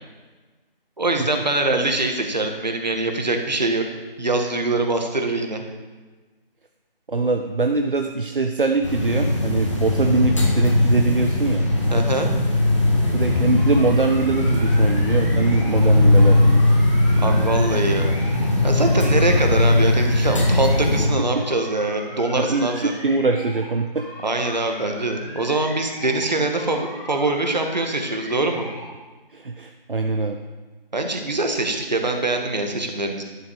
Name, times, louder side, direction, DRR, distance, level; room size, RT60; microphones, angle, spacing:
voice 1, 1.0-3.8 4.2-5.6 11.9-12.3 17.2-18.2 18.6-22.9 24.2-28.7 30.9-33.2, right 2 dB, 45° right, 4 dB, 1.7 m, -23 dB
voice 2, 7.1-11.6 13.1-16.7 21.3-21.4 22.4-24.1 29.3-30.4, right 3 dB, 65° right, 5 dB, 0.9 m, -22 dB
sound 1, 8.8-21.1, left 1 dB, 30° left, 1.7 m, -19 dB
sound 2, 13.5-15.9 16.1-18.5 18.7-21.1 21.3-23.7 23.9-26.3 26.6-28.9, equal, 10° left, 2.8 m, -39 dB
11.0 x 9.4 x 4.9 m, 1.3 s
figure-of-eight pair, 170°, 29 cm